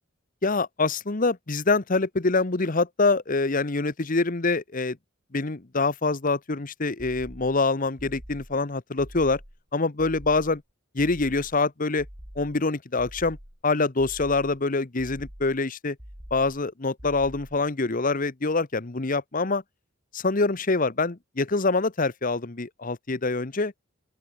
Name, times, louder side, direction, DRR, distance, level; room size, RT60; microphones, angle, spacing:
voice 1, 0.4-5.0 5.3-9.4 9.7-10.6 10.9-12.1 12.4-13.4 13.6-16.0 16.3-19.6 20.1-23.7, left 3 dB, 45° left, 1.1 m, -25 dB
sound 1, 7.0-7.6 8.0-8.6 9.0-9.6 10.0-10.6 11.0-11.6 12.0-12.6 13.0-13.6 14.0-14.6 15.0-15.6 16.0-16.6 17.0-17.6, equal, 25° right, 4.7 m, -45 dB
open air
head